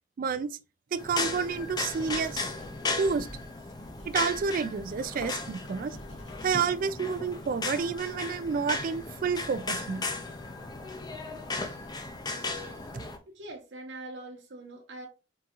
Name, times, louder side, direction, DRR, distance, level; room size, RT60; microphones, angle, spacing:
voice 1, 0.2-0.5 0.9-2.4 3.0-3.3 4.0-6.0 6.4-10.0, right 5 dB, 50° right, 0.3 m, -29 dB
sound 1, 1.0-13.2, left 3 dB, 20° left, 0.5 m, -36 dB
sound 2, 2.1-2.8 3.0-6.5, equal, 75° left, 1.3 m, -48 dB
voice 2, 13.3-15.1, right 2 dB, 70° right, 0.9 m, -43 dB
3.8 x 3.6 x 2.8 m
head